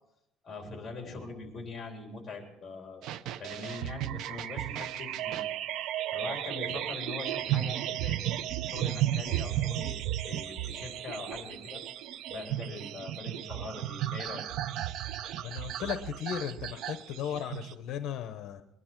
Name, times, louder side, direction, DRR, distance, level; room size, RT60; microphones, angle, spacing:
voice 1, 0.4-3.0 3.4-5.4 6.1-8.2 8.5-11.8 12.3-14.5, left 3 dB, 20° left, 2 dB, 3.5 m, -42 dB
sound 1, 3.0-17.7, right 12 dB, 60° right, 0.5 m, -34 dB
voice 2, 15.4-18.6, left 9 dB, 60° left, 9 dB, 0.7 m, -36 dB
21.5 x 11.0 x 4.5 m, 0.87 s
cardioid pair, 150°, 0 cm